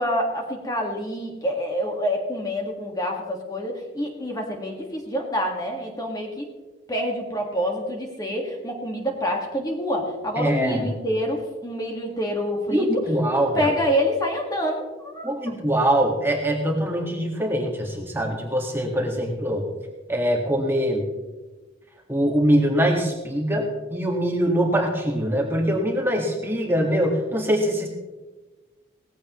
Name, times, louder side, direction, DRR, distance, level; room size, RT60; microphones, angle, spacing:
voice 1, 0.0-6.5 6.9-12.9 13.5-15.3, equal, 20° left, 1 dB, 1.8 m, -27 dB
voice 2, 10.4-10.9 12.7-13.7 15.2-19.7 20.1-21.0 22.1-27.9, equal, 10° right, 0 dB, 1.8 m, -23 dB
18.5 x 15.0 x 3.1 m, 1.2 s
head